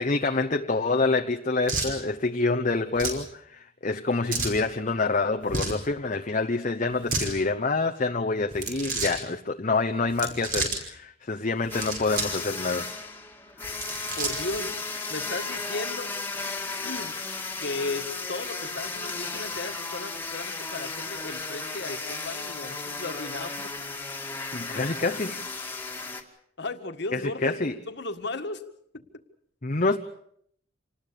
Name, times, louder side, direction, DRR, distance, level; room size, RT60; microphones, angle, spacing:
voice 1, 0.0-12.9 24.5-25.5 27.1-27.8 29.6-30.0, left 3 dB, 40° left, 4 dB, 0.9 m, -27 dB
sound 1, 1.7-2.0 2.9-3.2 4.3-4.6 5.4-5.8 6.9-7.3 8.5-9.2 10.1-10.8 11.6-12.4 12.7-12.8 13.6-14.6, right 3 dB, 45° right, 5.4 m, -31 dB
sound 2, 11.7-26.2, left 3 dB, 10° left, 2.2 m, -35 dB
voice 2, 14.2-14.8 15.1-16.1 16.8-17.2 17.6-23.7 26.6-27.6 27.9-28.6 28.9-29.1, left 2 dB, 60° left, 7 dB, 1.8 m, -35 dB
27.0 x 20.0 x 6.9 m, 0.67 s
head